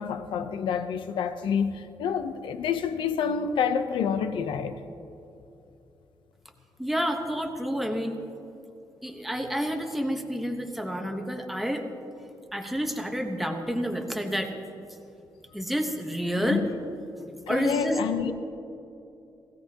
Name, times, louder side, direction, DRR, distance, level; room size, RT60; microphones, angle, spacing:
voice 1, 0.0-4.8 16.4-16.7 17.5-18.3, left 7 dB, 75° left, 0.8 m, -28 dB
voice 2, 6.8-8.2 9.0-11.8 12.5-14.5 15.5-16.6 17.5-18.0, equal, ahead, 1.1 m, -29 dB
20.0 x 16.5 x 3.0 m
wide cardioid pair, 175°, 9 cm